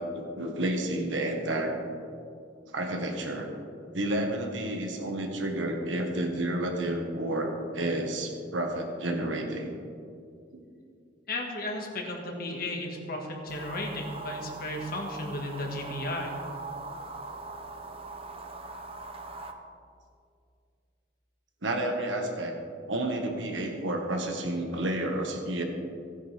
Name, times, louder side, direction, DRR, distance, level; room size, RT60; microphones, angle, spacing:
voice 1, 0.0-1.8 2.7-3.5 3.9-9.7 10.5-10.6 21.6-22.6 22.9-25.6, right 1 dB, 85° right, 2 dB, 1.5 m, -30 dB
voice 2, 11.3-16.3, left 1 dB, 50° left, 1 dB, 1.6 m, -34 dB
sound 1, 13.5-19.5, right 3 dB, 30° right, 0.7 m, -41 dB
16.0 x 10.0 x 3.4 m, 2.4 s
head